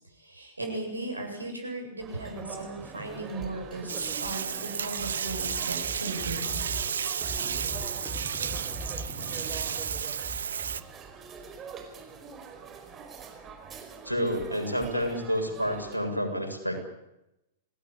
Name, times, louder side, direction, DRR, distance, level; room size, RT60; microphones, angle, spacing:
voice 1, 0.1-6.6, right 2 dB, 85° right, 3 dB, 8.0 m, -37 dB
sound 1, 2.0-15.9, right 6 dB, 20° right, 4.9 m, -44 dB
Bathtub (filling or washing), 3.9-10.8, right 7 dB, 65° right, 1.1 m, -32 dB
sound 2, 5.0-10.8, right 1 dB, 5° left, 6.0 m, -41 dB
voice 2, 14.0-16.8, equal, 90° left, 4 dB, 7.0 m, -29 dB
26.5 x 18.5 x 8.7 m, 0.90 s
figure-of-eight pair, 105°, 0 cm